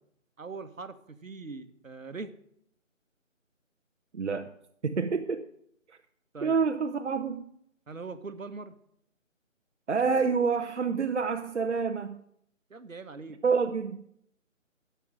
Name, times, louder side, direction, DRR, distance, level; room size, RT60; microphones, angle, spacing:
voice 1, 0.4-2.3 6.3-6.6 7.9-8.8 12.7-13.4, right 4 dB, 75° right, 9 dB, 1.3 m, -41 dB
voice 2, 4.1-4.5 4.8-5.4 5.9-6.0 6.4-7.5 9.9-12.2 13.4-14.1, right 5 dB, 60° right, 5 dB, 0.9 m, -28 dB
14.0 x 5.7 x 7.6 m, 0.71 s
figure-of-eight pair, 155°, 40 cm